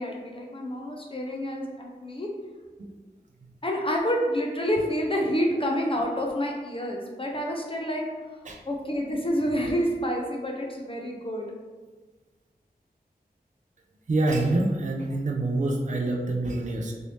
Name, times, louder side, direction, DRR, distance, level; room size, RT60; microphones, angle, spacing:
voice 1, 0.0-2.3 3.6-8.0 8.7-11.5, equal, 35° left, -1 dB, 0.5 m, -28 dB
voice 2, 14.1-16.9, right 2 dB, 45° right, 0 dB, 0.4 m, -26 dB
3.1 x 2.7 x 3.1 m, 1.3 s
wide cardioid pair, 70°, 17 cm